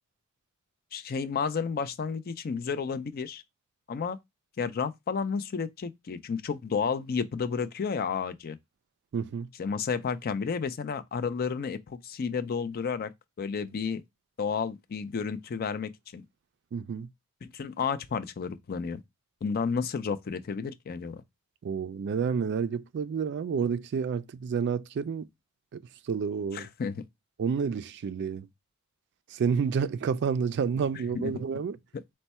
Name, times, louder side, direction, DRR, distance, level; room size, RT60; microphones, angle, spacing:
voice 1, 0.9-3.4 3.9-4.2 4.6-8.6 9.6-13.1 13.4-14.0 14.4-16.2 17.4-19.0 19.4-21.2 26.5-27.0 31.1-31.3, left 5 dB, 45° left, 0.4 m, -31 dB
voice 2, 9.1-9.5 16.7-17.1 21.6-25.3 25.7-25.8 26.1-26.7 27.4-28.5 29.3-31.8, right 6 dB, 55° right, 0.3 m, -29 dB
4.4 x 2.2 x 4.1 m
head